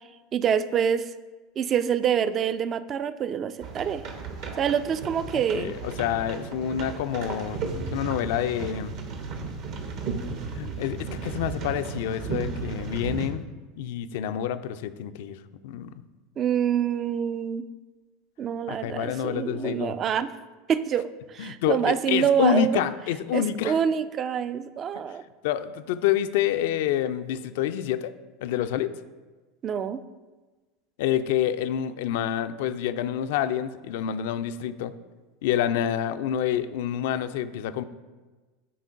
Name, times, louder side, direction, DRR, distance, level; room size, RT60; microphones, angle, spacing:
voice 1, 0.3-1.1 1.6-4.0 4.6-5.8 16.4-17.7 18.4-20.3 20.7-22.8 23.3-25.2 29.6-30.0, right 8 dB, 35° right, 14 dB, 0.3 m, -26 dB
sound 1, 3.6-13.3, right 4 dB, 55° right, 0.8 m, -34 dB
voice 2, 5.5-8.9 10.5-13.4 13.8-15.4 15.6-15.9 18.7-19.9 21.4-23.8 24.9-25.0 25.4-28.1 28.4-28.9 31.0-34.9 35.4-37.8, left 10 dB, 65° left, 12 dB, 0.3 m, -27 dB
9.9 x 3.8 x 2.5 m, 1.3 s
hypercardioid pair, 85°, 0 cm